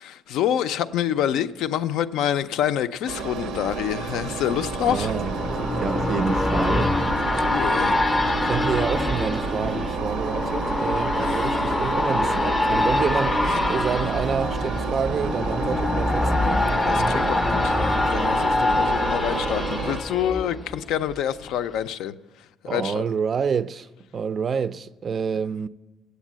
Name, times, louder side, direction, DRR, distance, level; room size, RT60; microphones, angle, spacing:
voice 1, 0.0-5.1 7.5-8.2 11.2-11.4 16.9-17.8 18.1-22.1 22.7-23.0, left 10 dB, 85° left, 0.4 m, -27 dB
Engine, 3.1-20.0, right 5 dB, 85° right, 0.6 m, -31 dB
sound 1, 3.4-21.1 21.6-21.7, left 2 dB, 15° left, 0.5 m, -25 dB
voice 2, 4.9-5.4 5.8-7.0 8.4-16.7 16.9-17.3 22.7-25.7, right 6 dB, 35° right, 0.3 m, -28 dB
8.2 x 8.1 x 7.3 m
cardioid pair, 140°, 0 cm